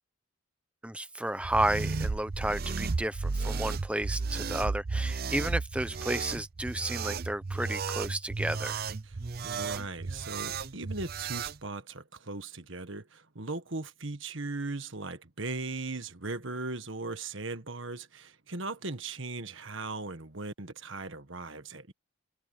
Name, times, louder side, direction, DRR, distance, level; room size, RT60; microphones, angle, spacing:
voice 1, 0.8-8.8, right 1 dB, 5° right, 0.9 m, -32 dB
sound 1, 1.4-11.6, right 4 dB, 45° right, 0.6 m, -33 dB
voice 2, 9.0-21.9, right 3 dB, 65° right, 1.6 m, -38 dB
head